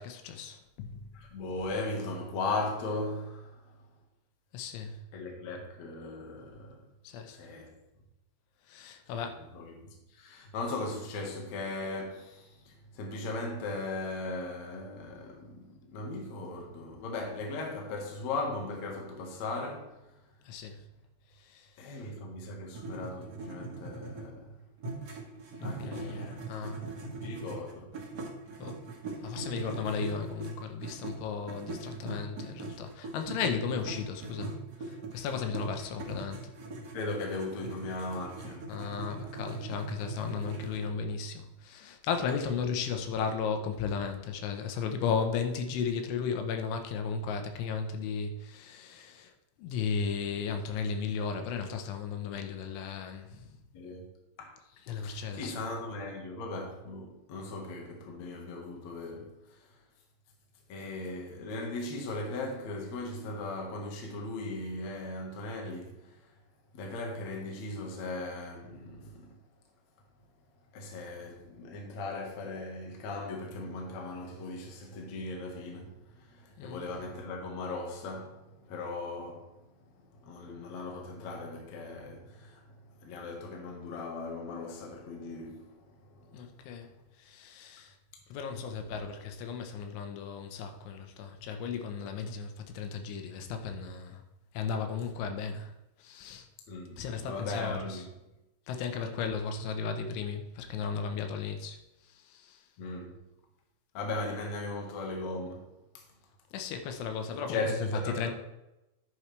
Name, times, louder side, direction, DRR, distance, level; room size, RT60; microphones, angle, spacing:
voice 1, 0.0-1.0 4.5-5.0 7.1-7.4 8.7-9.5 20.5-20.8 21.4-22.0 25.6-26.9 28.6-28.8 29.2-36.5 38.7-49.3 49.6-53.6 54.9-55.6 76.6-76.8 86.3-86.9 87.2-88.0 88.3-94.2 94.6-95.7 96.0-96.5 97.0-98.0 98.7-101.8 102.0-102.6 106.5-108.3, left 6 dB, 90° left, 3.5 m, -35 dB
voice 2, 1.1-3.8 5.1-6.8 7.3-7.7 9.1-20.0 21.8-24.6 25.6-26.4 27.0-27.9 36.9-38.9 53.7-54.1 54.4-59.8 60.7-66.3 66.7-69.4 70.7-79.7 80.1-86.6 96.7-98.1 102.8-103.2 103.9-105.7 105.9-106.0 107.5-108.3, left 2 dB, 60° left, 1.9 m, -38 dB
sound 1, 22.7-24.4 24.8-31.2 31.4-40.9, right 3 dB, 85° right, 0.9 m, -41 dB
11.0 x 8.7 x 3.3 m
omnidirectional pair, 5.3 m